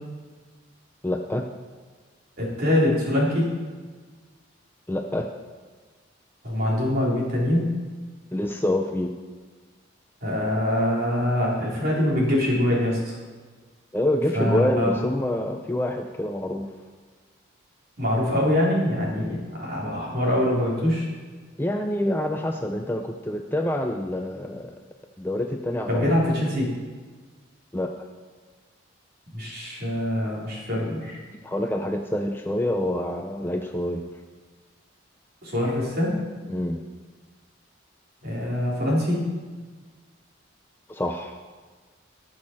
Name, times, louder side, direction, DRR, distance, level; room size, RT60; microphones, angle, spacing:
voice 1, 1.0-1.5 4.9-5.3 8.3-9.1 13.9-16.7 21.6-24.8 25.2-26.1 27.7-28.1 31.4-34.0 36.5-36.8 40.9-41.4, left 1 dB, 10° left, 3 dB, 0.4 m, -26 dB
voice 2, 2.4-3.6 6.4-7.8 10.2-13.2 14.3-15.0 18.0-21.1 25.9-26.7 29.3-31.2 35.4-36.4 38.2-39.3, left 1 dB, 50° right, -5 dB, 3.3 m, -24 dB
17.5 x 6.3 x 4.3 m, 1.5 s
head